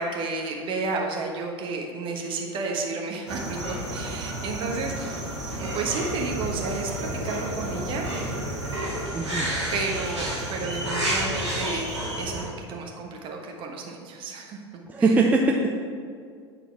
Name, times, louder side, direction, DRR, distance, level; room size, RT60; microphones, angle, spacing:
voice 1, 0.0-5.2 5.6-8.1 9.7-14.6 15.0-15.1, right 3 dB, 35° right, 1 dB, 1.2 m, -32 dB
sound 1, 3.3-12.4, right 1 dB, 85° right, 2.0 m, -30 dB
voice 2, 9.1-9.5 14.9-15.8, right 3 dB, 10° right, 0 dB, 0.5 m, -21 dB
9.1 x 4.1 x 4.5 m, 2.1 s
figure-of-eight pair, 80°, 14 cm